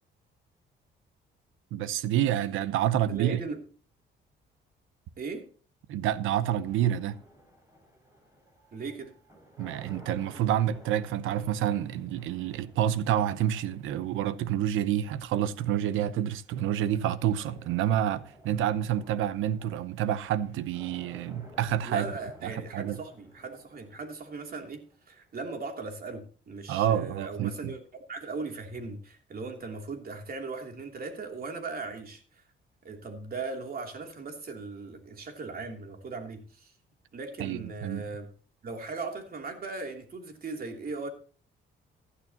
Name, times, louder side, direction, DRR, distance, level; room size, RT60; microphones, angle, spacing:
voice 1, 1.7-3.4 5.9-7.2 9.6-22.1 22.4-23.0 26.7-27.7 37.4-38.0, right 11 dB, 90° right, 0.8 m, -28 dB
voice 2, 3.1-3.6 5.2-5.5 8.7-9.2 21.8-27.8 28.1-32.4 32.8-36.7 37.1-38.3 38.6-41.1, right 3 dB, 50° right, 3.0 m, -38 dB
sound 1, 6.3-25.3, equal, 15° right, 5.5 m, -55 dB
15.5 x 11.5 x 2.9 m
cardioid pair, 90°, 20 cm